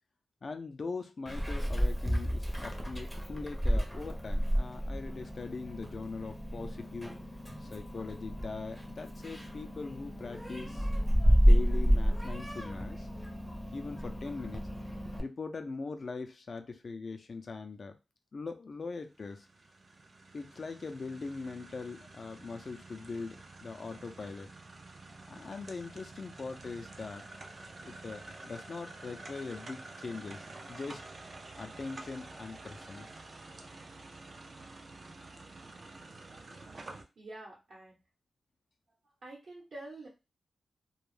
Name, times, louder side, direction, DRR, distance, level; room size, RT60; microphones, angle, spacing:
voice 1, 0.4-7.1 7.6-10.9 11.4-13.1 13.7-14.7 15.2-18.0 18.3-19.5 20.3-24.5 25.3-27.3 27.8-31.0 31.6-33.1, left 4 dB, 55° left, 7 dB, 0.4 m, -41 dB
Meow, 1.3-15.2, equal, ahead, 0.6 m, -30 dB
sound 1, 19.1-37.0, right 2 dB, 50° right, 0.4 m, -49 dB
voice 2, 37.2-38.0 39.2-40.1, right 2 dB, 70° right, -6 dB, 0.9 m, -47 dB
2.2 x 2.0 x 3.1 m, 0.27 s
cardioid pair, 75°, 0 cm